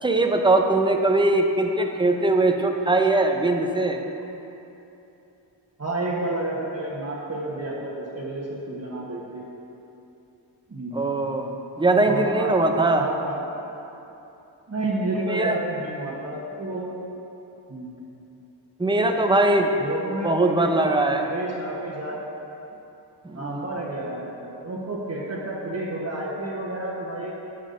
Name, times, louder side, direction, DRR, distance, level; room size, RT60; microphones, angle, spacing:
voice 1, 0.0-4.0 10.9-11.5 11.8-13.0 15.3-15.6 18.8-19.7 20.2-21.3 23.2-23.7, right 2 dB, 10° right, 4 dB, 0.6 m, -21 dB
voice 2, 5.8-9.4 10.7-11.0 12.0-12.5 13.0-13.4 14.7-16.9 17.7-17.9 19.8-20.9 21.2-22.2 23.3-27.4, right 2 dB, 35° right, -5 dB, 1.2 m, -30 dB
10.0 x 7.4 x 2.6 m, 2.9 s
cardioid pair, 55°, 45 cm